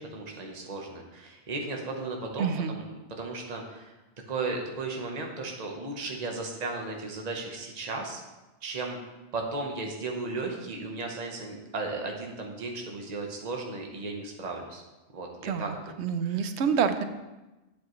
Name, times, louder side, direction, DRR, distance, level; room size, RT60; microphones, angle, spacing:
voice 1, 0.0-2.9 3.2-3.9 4.3-8.2 8.6-14.8 15.1-15.7 16.2-16.5, right 3 dB, 40° right, 1 dB, 1.0 m, -35 dB
voice 2, 2.4-2.7 15.4-17.0, right 6 dB, 75° right, 9 dB, 0.9 m, -28 dB
9.1 x 7.7 x 3.1 m, 1.1 s
omnidirectional pair, 1.2 m